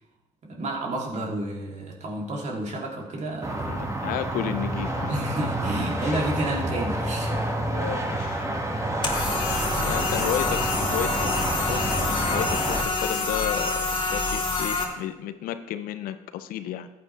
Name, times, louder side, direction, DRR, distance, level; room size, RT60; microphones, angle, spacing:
voice 1, 0.4-3.8 5.1-7.3, right 1 dB, 50° right, -2 dB, 3.1 m, -31 dB
sound 1, 3.4-12.8, right 1 dB, 20° right, 2.1 m, -28 dB
voice 2, 3.7-5.1 6.0-6.2 7.7-8.5 9.1-9.4 9.7-16.9, left 11 dB, 75° left, 11 dB, 0.8 m, -33 dB
sound 2, 9.0-14.8, left 3 dB, 30° left, 2.6 m, -27 dB
14.5 x 9.0 x 3.4 m, 1.0 s
supercardioid pair, 65°, 15 cm